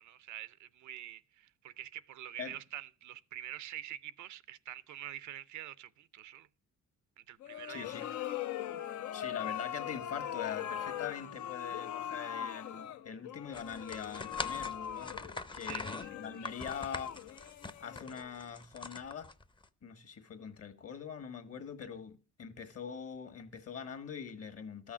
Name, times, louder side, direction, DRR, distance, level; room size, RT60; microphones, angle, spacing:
voice 1, 0.0-6.5 7.2-8.0 15.6-16.1, right 12 dB, 75° right, 0.6 m, -46 dB
sound 1, 7.4-18.4, left 10 dB, 70° left, 0.7 m, -41 dB
voice 2, 7.7-8.1 9.1-15.2 15.5-17.1 17.8-19.3 19.8-24.9, left 7 dB, 50° left, 1.7 m, -43 dB
sound 2, 13.5-19.7, left 3 dB, 15° left, 0.6 m, -43 dB
13.0 x 6.3 x 6.1 m
cardioid pair, 90°, 30 cm